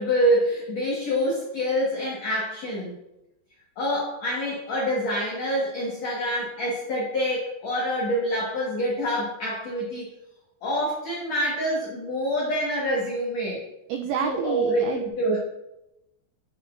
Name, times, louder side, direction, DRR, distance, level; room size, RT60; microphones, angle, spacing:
voice 1, 0.0-3.0 3.8-10.1 10.6-13.6 14.2-15.4, equal, 60° left, -4 dB, 1.8 m, -26 dB
voice 2, 13.9-15.0, right 7 dB, 85° right, 4 dB, 2.2 m, -29 dB
10.5 x 6.4 x 2.5 m, 0.91 s
omnidirectional pair, 5.0 m